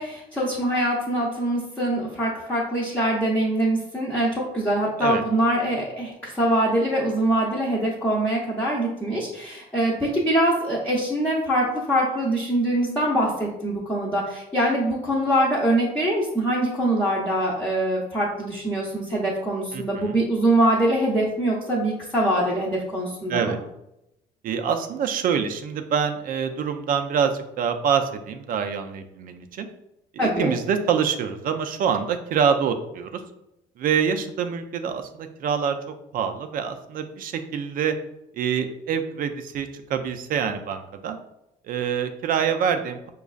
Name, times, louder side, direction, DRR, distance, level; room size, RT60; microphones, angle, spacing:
voice 1, 0.0-23.5 30.2-30.5, right 1 dB, 10° left, -6 dB, 0.7 m, -23 dB
voice 2, 19.7-20.2 23.3-23.6 24.4-29.7 30.1-33.2 33.8-35.8 36.1-38.0 38.3-41.2 41.7-43.1, right 7 dB, 55° right, 8 dB, 0.4 m, -25 dB
5.1 x 2.3 x 2.3 m, 0.85 s
cardioid pair, 110°, 17 cm